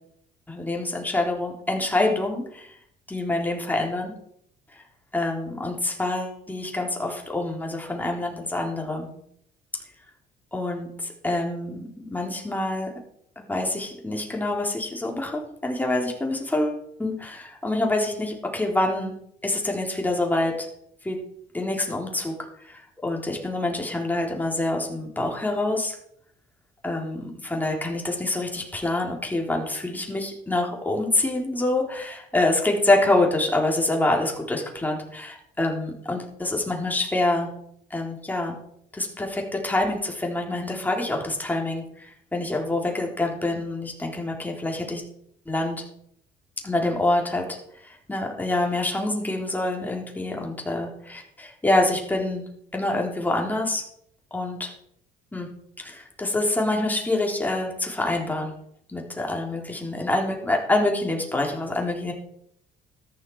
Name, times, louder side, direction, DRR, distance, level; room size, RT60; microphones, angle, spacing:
voice 1, 0.5-2.8 3.1-4.1 4.7-4.8 5.1-9.1 10.5-12.9 13.4-19.2 19.4-20.5 21.0-21.2 21.5-26.0 26.8-37.5 37.9-38.6 38.9-45.0 45.5-45.8 46.6-47.5 47.7-52.4 52.7-53.8 54.3-54.7 55.3-55.5 55.8-58.5 58.9-62.1, left 2 dB, 10° left, 0 dB, 3.8 m, -26 dB
13.5 x 11.0 x 4.8 m, 0.69 s
cardioid pair, 110°, 17 cm